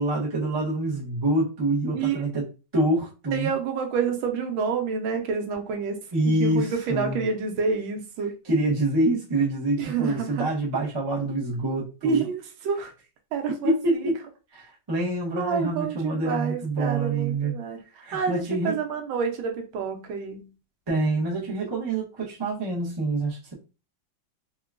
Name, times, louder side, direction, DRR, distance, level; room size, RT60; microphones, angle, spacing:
voice 1, 0.0-2.5 2.7-3.5 6.1-7.2 8.4-12.2 13.5-14.2 14.5-17.5 18.0-18.8 20.9-23.5, right 2 dB, 40° right, -5 dB, 0.3 m, -26 dB
voice 2, 3.3-6.0 6.4-8.3 9.8-10.5 12.0-12.9 13.3-14.0 15.4-17.8 18.1-20.5, right 5 dB, 85° right, 4 dB, 1.4 m, -28 dB
3.5 x 2.2 x 2.4 m, 0.32 s
omnidirectional pair, 2.1 m